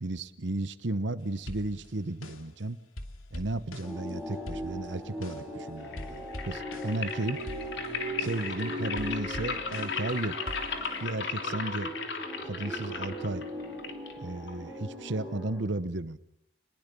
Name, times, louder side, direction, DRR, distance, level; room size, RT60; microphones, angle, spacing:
voice 1, 0.0-2.8 3.3-7.4 8.2-10.4 11.0-11.9 12.4-13.4 14.2-16.2, right 2 dB, 60° right, 13 dB, 1.0 m, -34 dB
sound 1, 1.5-2.6 3.0-5.6 6.0-7.1 7.4-10.1 10.5-11.1, left 1 dB, 85° left, 2.8 m, -44 dB
sound 2, 3.8-15.6, equal, ahead, 7.1 m, -39 dB
sound 3, 5.8-14.8, left 5 dB, 55° left, 3.1 m, -37 dB
29.0 x 21.5 x 7.0 m, 0.75 s
head